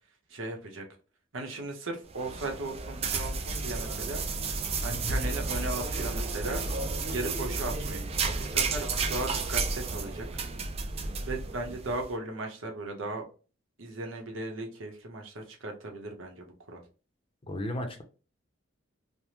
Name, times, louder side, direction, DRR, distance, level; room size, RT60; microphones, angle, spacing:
voice 1, 0.3-0.8 1.3-4.2 4.8-6.6 7.1-10.3 11.2-13.3 13.8-16.8, right 2 dB, 85° right, 2 dB, 0.9 m, -37 dB
Toilet cleanning brush, 2.1-12.1, right 4 dB, 30° right, 0.4 m, -32 dB
voice 2, 4.8-5.2 17.4-18.0, left 1 dB, 30° left, 5 dB, 0.6 m, -35 dB
3.3 x 2.1 x 2.8 m, 0.34 s
head